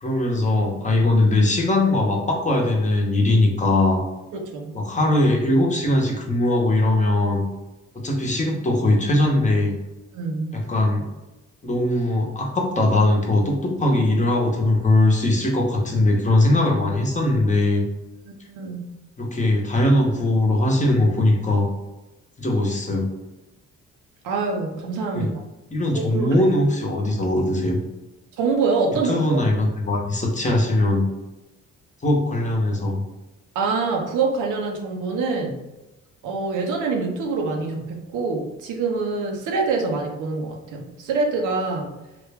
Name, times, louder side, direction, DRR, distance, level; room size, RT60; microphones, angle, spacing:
voice 1, 0.0-4.0 4.7-7.4 7.9-9.7 10.5-11.1 11.6-17.8 19.2-21.7 22.4-23.1 25.1-25.3 25.7-27.8 29.1-31.1 32.0-33.0, left 1 dB, 25° left, -1 dB, 0.9 m, -20 dB
voice 2, 4.3-4.8 10.1-10.7 18.1-18.9 24.2-25.4 25.9-26.3 28.4-29.5 33.5-35.6 36.2-41.9, right 4 dB, 85° right, 1 dB, 0.6 m, -25 dB
3.2 x 2.2 x 3.3 m, 1.0 s
cardioid pair, 90°, 30 cm